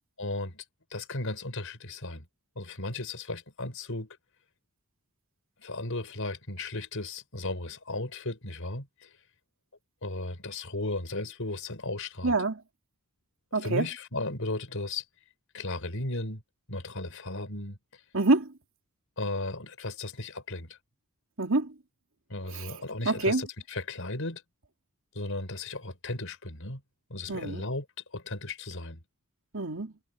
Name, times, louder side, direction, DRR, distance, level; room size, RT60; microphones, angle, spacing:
voice 1, 0.2-0.6 0.9-2.3 2.6-4.2 5.6-9.1 10.0-12.4 13.5-15.0 15.5-16.4 16.7-18.0 19.2-20.8 22.3-24.4 25.1-26.8 27.1-27.9 28.1-29.0, left 2 dB, 65° left, 5.6 m, -35 dB
voice 2, 12.2-12.6 13.5-13.8 18.1-18.5 21.4-21.7 22.5-22.7 23.1-23.4 27.3-27.6 29.5-29.9, right 2 dB, 65° right, 2.6 m, -26 dB
head